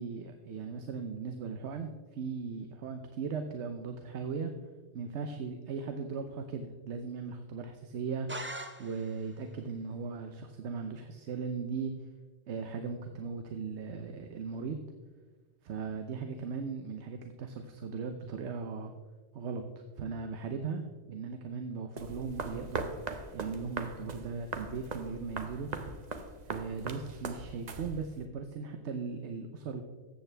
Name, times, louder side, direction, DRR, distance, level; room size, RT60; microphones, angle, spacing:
voice 1, 0.0-4.5 4.9-11.9 12.5-14.8 15.6-18.9 19.3-22.9 23.3-25.7 26.4-29.8, right 5 dB, 80° right, 6 dB, 1.0 m, -38 dB
sound 1, 8.3-9.4, right 1 dB, 15° right, 0.4 m, -41 dB
sound 2, 22.0-28.2, right 4 dB, 45° right, 0.8 m, -40 dB
13.5 x 8.3 x 3.3 m, 1.4 s
omnidirectional pair, 1.1 m